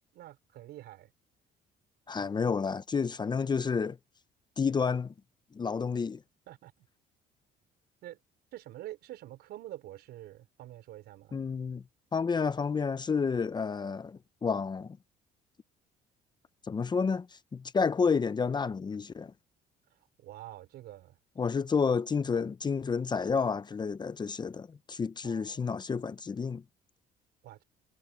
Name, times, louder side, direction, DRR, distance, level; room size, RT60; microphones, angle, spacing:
voice 1, 0.1-1.1 6.5-6.9 8.0-8.2 8.5-11.4 19.9-21.2 22.3-22.4 25.2-25.7 27.4-27.6, right 14 dB, 75° right, 4.9 m, -47 dB
voice 2, 2.1-4.0 4.6-5.1 5.5-6.2 11.3-11.8 12.1-15.0 16.7-19.3 21.4-26.6, left 5 dB, 25° left, 0.7 m, -30 dB
cardioid pair, 110°, 17 cm